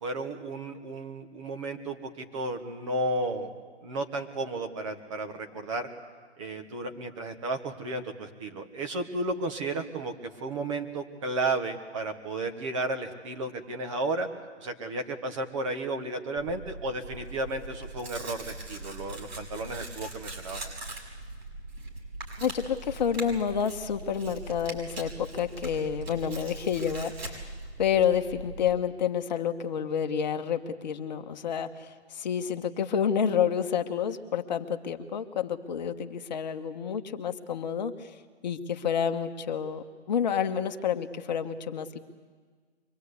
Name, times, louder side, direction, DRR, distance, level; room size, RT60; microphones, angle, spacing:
voice 1, 0.0-3.5 3.8-5.9 6.4-10.1 10.4-14.3 14.6-20.7, right 2 dB, 25° right, 6 dB, 1.5 m, -33 dB
Tearing, 16.4-28.7, right 2 dB, 60° right, 6.4 m, -41 dB
voice 2, 22.4-27.5 27.8-38.1 38.4-42.0, left 8 dB, 40° left, 6 dB, 1.2 m, -29 dB
24.5 x 21.0 x 8.3 m, 1.5 s
hypercardioid pair, 160°, 35 cm